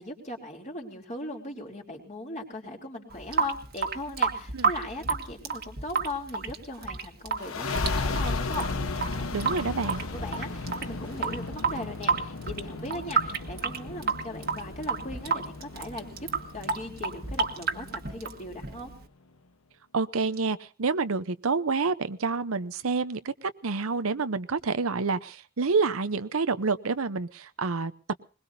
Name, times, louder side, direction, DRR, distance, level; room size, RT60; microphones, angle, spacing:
voice 1, 0.0-9.3 10.1-16.3 16.5-18.9, left 1 dB, 35° left, 0 dB, 3.5 m, -39 dB
Water tap faucet / Sink (filling or washing) / Drip, 3.1-19.0, right 5 dB, 45° right, 1.5 m, -31 dB
sound 1, 7.4-18.6, left 3 dB, 80° left, 1.1 m, -35 dB
voice 2, 9.3-10.0 19.9-23.3 23.6-27.9, right 4 dB, 80° right, 12 dB, 0.8 m, -28 dB
21.5 x 21.0 x 2.7 m, 0.37 s
head